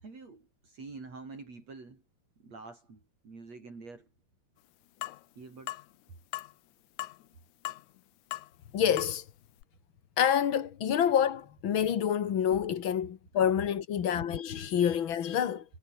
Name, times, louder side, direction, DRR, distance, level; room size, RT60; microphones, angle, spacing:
voice 1, 0.0-2.0 2.4-4.1 5.4-5.8, right 3 dB, 60° right, 7.0 m, -47 dB
sound 1, 5.0-5.2 5.7-5.9 6.3-6.5 7.0-7.2 7.7-8.0 8.3-8.5 9.0-9.2 9.6-9.7, left 16 dB, 75° left, 2.1 m, -38 dB
voice 2, 8.7-9.2 10.2-15.6, left 9 dB, 50° left, 1.8 m, -27 dB
omnidirectional pair, 3.5 m